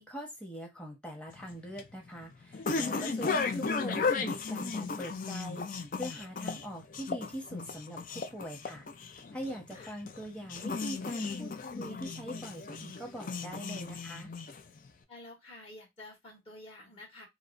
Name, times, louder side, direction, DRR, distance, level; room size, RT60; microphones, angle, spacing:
voice 1, 0.0-8.9 9.3-14.3, equal, 5° left, 0 dB, 1.0 m, -42 dB
sound 1, 1.3-14.9, left 4 dB, 50° left, 0.4 m, -35 dB
voice 2, 15.1-17.3, left 2 dB, 30° left, -2 dB, 1.4 m, -50 dB
4.6 x 2.1 x 2.5 m, 0.18 s
head